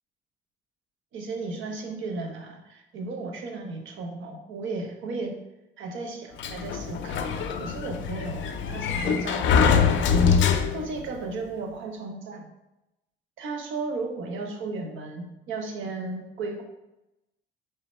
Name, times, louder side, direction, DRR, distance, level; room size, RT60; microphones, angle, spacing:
voice 1, 1.1-5.4 5.8-7.3 7.6-9.8 10.7-12.5 13.4-16.6, right 3 dB, 85° right, 3 dB, 0.7 m, -35 dB
Sliding door, 6.4-11.1, left 6 dB, 70° left, 0.4 m, -23 dB
3.4 x 3.3 x 4.1 m, 0.94 s
cardioid pair, 90°, 20 cm